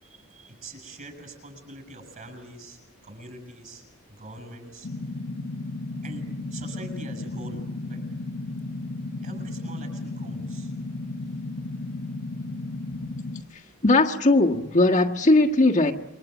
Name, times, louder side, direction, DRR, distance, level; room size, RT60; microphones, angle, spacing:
voice 1, 0.0-5.2 6.0-8.1 9.2-10.7, right 1 dB, 40° right, 7.4 m, -44 dB
sound 1, 4.8-13.4, left 2 dB, 55° left, 1.2 m, -34 dB
voice 2, 13.8-15.9, left 2 dB, 35° left, 1.6 m, -19 dB
28.0 x 24.5 x 8.3 m
head